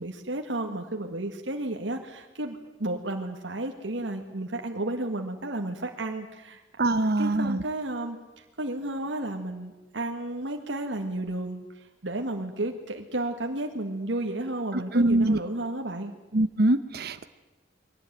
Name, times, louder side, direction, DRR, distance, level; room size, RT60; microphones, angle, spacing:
voice 1, 0.0-6.6 6.9-16.1, right 1 dB, 75° right, 3 dB, 1.9 m, -32 dB
voice 2, 6.8-7.6 14.7-15.4 16.3-17.2, right 1 dB, 55° right, 11 dB, 0.9 m, -23 dB
22.0 x 18.0 x 9.3 m, 1.1 s
head